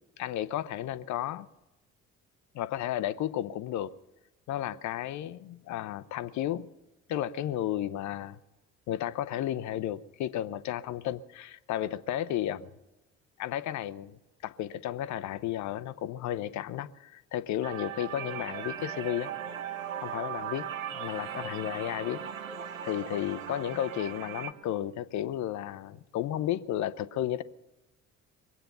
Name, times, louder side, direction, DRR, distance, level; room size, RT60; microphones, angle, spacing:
voice 1, 0.2-1.5 2.5-3.9 4.5-6.7 7.1-8.4 8.9-12.7 13.4-14.2 14.4-19.3 20.0-20.7 20.9-22.2 22.8-27.4, left 12 dB, 50° left, 0.7 m, -33 dB
sound 1, 17.6-24.5, right 9 dB, 85° right, 0.6 m, -38 dB
Bowed string instrument, 18.0-25.4, right 10 dB, 55° right, 0.9 m, -52 dB
22.5 x 8.9 x 6.8 m
figure-of-eight pair, 45°, 39 cm